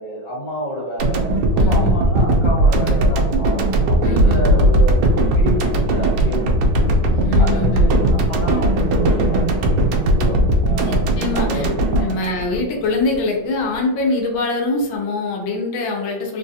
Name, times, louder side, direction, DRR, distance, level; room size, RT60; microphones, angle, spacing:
voice 1, 0.0-10.9 11.3-12.1, equal, 55° left, -4 dB, 1.8 m, -29 dB
sound 1, 1.0-13.2, right 1 dB, 90° right, 1.4 m, -17 dB
voice 2, 1.6-1.9 4.0-4.4 7.2-7.9 10.7-11.7 12.0-16.4, left 3 dB, 85° left, 0 dB, 1.5 m, -23 dB
3.7 x 2.3 x 2.7 m, 1.1 s
omnidirectional pair, 2.1 m